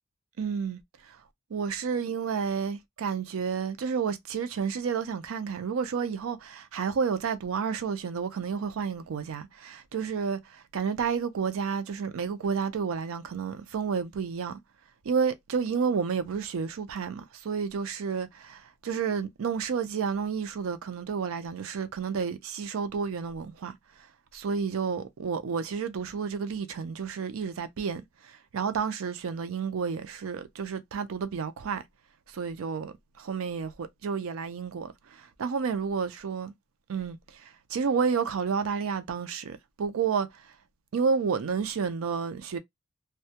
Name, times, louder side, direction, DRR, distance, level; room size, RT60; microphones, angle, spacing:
voice 1, 0.4-1.2 1.5-14.6 15.0-23.8 24.3-31.8 32.3-36.5 36.9-40.4 40.9-42.6, right 6 dB, 85° right, 0.4 m, -31 dB
2.2 x 2.1 x 2.7 m
head